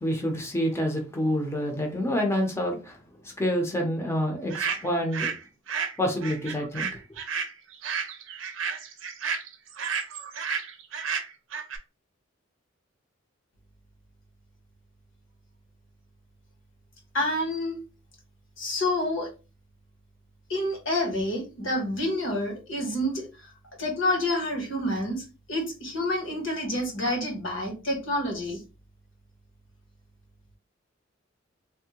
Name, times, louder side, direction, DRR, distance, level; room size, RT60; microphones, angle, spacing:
voice 1, 0.0-3.0 3.2-5.3 6.0-6.9, equal, 15° left, 0.6 m, -27 dB
sound 1, 4.5-5.4 5.7-11.8, right 6 dB, 75° right, 0.6 m, -32 dB
voice 2, 17.1-17.8 18.6-19.3 20.5-23.3 23.8-28.6, left 1 dB, 75° left, 1.2 m, -28 dB
3.4 x 2.1 x 2.9 m
head